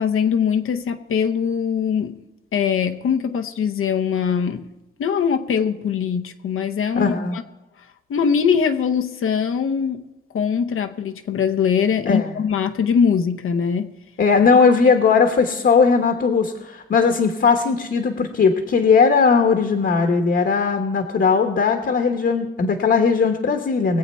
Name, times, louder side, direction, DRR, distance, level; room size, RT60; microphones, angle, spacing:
voice 1, 0.0-2.1 2.5-4.7 5.0-7.4 8.1-10.0 10.3-13.9, left 7 dB, 80° left, 5 dB, 0.9 m, -22 dB
voice 2, 6.9-7.4 12.1-12.3 14.2-24.0, left 5 dB, 55° left, 4 dB, 1.2 m, -18 dB
21.5 x 8.2 x 4.3 m, 1.0 s
wide cardioid pair, 150°, 21 cm